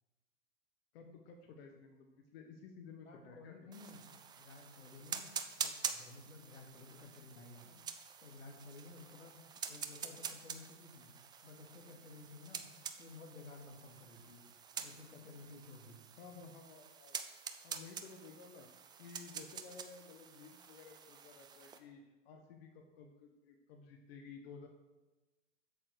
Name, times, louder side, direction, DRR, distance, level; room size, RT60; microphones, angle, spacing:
voice 1, 0.9-3.5 9.1-9.3 16.2-17.2 17.6-18.7 19.0-24.7, left 5 dB, 50° left, 3 dB, 1.4 m, -54 dB
voice 2, 3.1-4.0 4.3-5.3 5.6-7.8 8.2-9.3 9.7-11.1 11.4-14.4 14.8-16.0, left 3 dB, 80° left, 1 dB, 2.4 m, -54 dB
sound 1, 3.7-21.8, right 7 dB, 10° right, 0.5 m, -47 dB
8.1 x 7.5 x 6.4 m, 1.1 s
hypercardioid pair, 110°, 38 cm